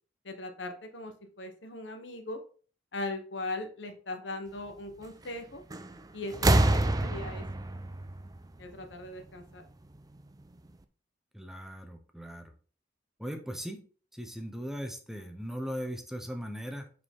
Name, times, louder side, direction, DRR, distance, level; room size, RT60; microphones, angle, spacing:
voice 1, 0.2-2.4 2.9-5.6 6.1-7.4 8.6-9.6, left 2 dB, 90° left, 6 dB, 1.1 m, -39 dB
sound 1, 5.7-6.0 6.3-9.1 10.2-10.3, right 2 dB, 20° right, 0.5 m, -27 dB
voice 2, 11.3-12.5 13.2-13.8 14.1-16.9, equal, ahead, 5 dB, 0.8 m, -38 dB
6.7 x 4.8 x 3.7 m, 0.41 s
head